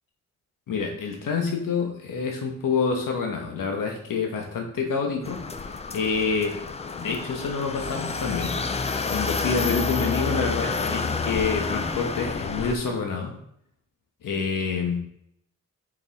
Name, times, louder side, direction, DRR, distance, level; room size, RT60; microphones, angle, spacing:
voice 1, 0.7-5.4 5.9-6.6 6.9-8.6 9.1-13.3 14.2-15.0, left 5 dB, 90° left, 2 dB, 1.2 m, -27 dB
sound 1, 5.2-12.8, left 4 dB, 20° left, 0.3 m, -29 dB
5.4 x 5.0 x 4.1 m, 0.72 s
wide cardioid pair, 175°, 32 cm